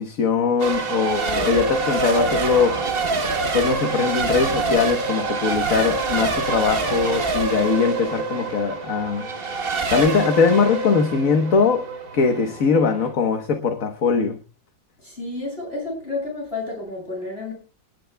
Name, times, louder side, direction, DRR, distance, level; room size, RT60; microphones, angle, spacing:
voice 1, 0.0-2.8 3.5-9.3 9.9-11.8 12.1-14.4, left 5 dB, 50° left, 1.5 m, -21 dB
Race car auto racing / Accelerating revving vroom / Mechanisms, 0.6-13.1, right 3 dB, 35° right, 1.1 m, -26 dB
voice 2, 15.0-17.5, left 3 dB, 30° left, 7.3 m, -30 dB
28.0 x 11.0 x 2.3 m
omnidirectional pair, 2.0 m